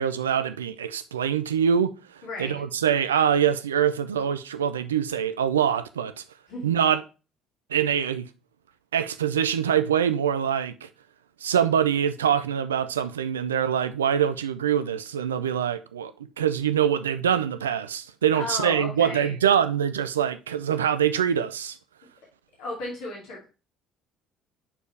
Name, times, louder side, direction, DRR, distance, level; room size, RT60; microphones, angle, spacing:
voice 1, 0.0-1.9 2.4-6.2 6.6-7.0 7.7-8.2 8.9-10.9 11.4-16.1 16.4-21.8, right 8 dB, 85° right, 0.4 m, -24 dB
voice 2, 2.2-2.6 6.5-6.7 18.3-19.4 22.6-23.5, left 2 dB, 65° left, 2.4 m, -34 dB
7.0 x 4.3 x 3.2 m
hypercardioid pair, 55°, 0 cm